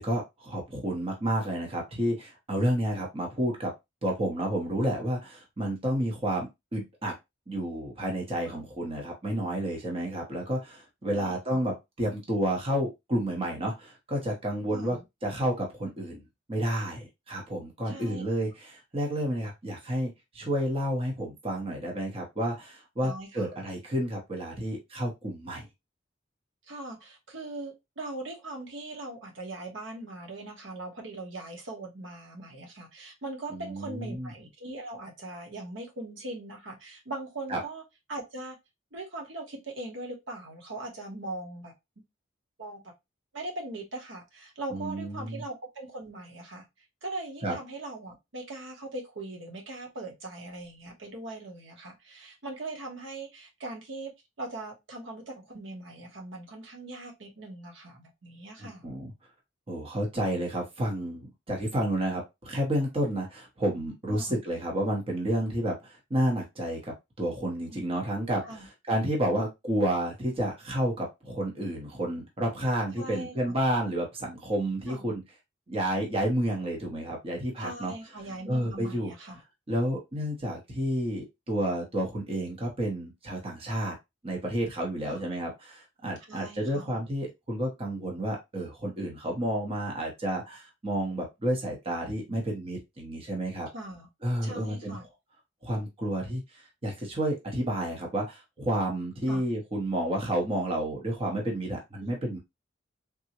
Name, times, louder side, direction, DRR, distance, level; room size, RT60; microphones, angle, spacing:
voice 1, 0.0-3.7 4.0-7.1 7.5-16.2 16.5-25.7 33.5-34.3 37.5-37.6 44.7-45.4 47.4-47.5 58.6-59.1 59.7-75.2 75.7-77.9 78.5-79.1 79.7-83.9 84.2-93.7 94.2-95.0 95.6-102.4, right 1 dB, 30° right, 0.7 m, -30 dB
voice 2, 11.1-11.6 14.7-15.0 17.8-18.2 23.0-23.5 26.7-37.8 38.1-38.6 38.9-41.7 42.6-42.9 43.3-46.7 47.0-54.1 54.4-58.9 64.1-64.4 67.7-67.8 68.4-68.7 73.0-73.6 74.9-75.2 77.6-79.4 85.0-85.2 86.3-86.9 93.7-94.1 94.4-95.0 99.3-99.5 102.0-102.1, right 2 dB, 65° right, 0.9 m, -40 dB
3.6 x 2.0 x 2.8 m
head